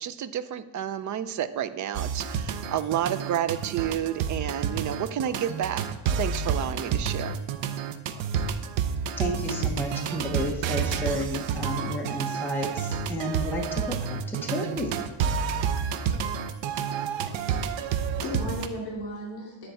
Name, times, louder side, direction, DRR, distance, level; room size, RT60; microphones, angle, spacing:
voice 1, 0.0-5.8 6.2-7.4, right 10 dB, 40° right, 12 dB, 0.5 m, -30 dB
sound 1, 1.9-18.7, right 7 dB, 80° right, 0.8 m, -29 dB
voice 2, 9.2-15.0, left 1 dB, 5° left, 0 dB, 0.9 m, -32 dB
voice 3, 17.6-19.7, left 1 dB, 55° left, -3 dB, 2.8 m, -36 dB
10.0 x 4.5 x 6.9 m, 1.0 s
cardioid pair, 175°, 45 cm